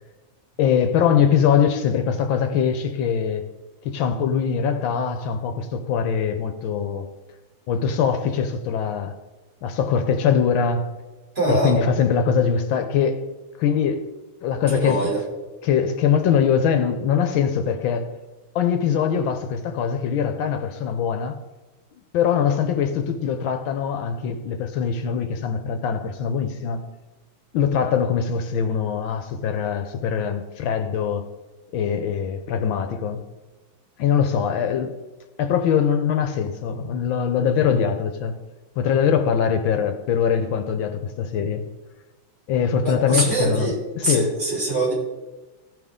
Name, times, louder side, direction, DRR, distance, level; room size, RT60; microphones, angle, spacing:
voice 1, 0.6-3.4 3.8-7.1 7.7-9.2 9.6-10.9 11.5-13.2 13.6-14.1 14.4-15.0 15.6-18.1 18.5-21.4 22.1-26.9 27.5-31.3 31.7-33.2 34.0-34.9 35.4-38.3 38.8-41.6 42.5-44.3, left 7 dB, 80° left, 1.4 m, -22 dB
voice 2, 11.3-11.7 14.7-15.2 42.8-43.8 44.0-44.9, right 2 dB, 35° right, 3.4 m, -23 dB
15.5 x 6.0 x 3.6 m
omnidirectional pair, 2.2 m